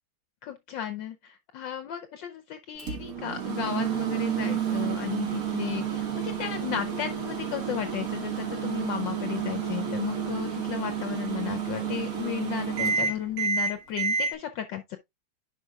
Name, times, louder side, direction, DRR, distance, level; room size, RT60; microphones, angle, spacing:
voice 1, 0.4-15.0, left 10 dB, 70° left, 1.2 m, -34 dB
Microwave oven, 2.8-14.3, right 7 dB, 45° right, 1.8 m, -30 dB
10.5 x 5.0 x 2.3 m
omnidirectional pair, 2.3 m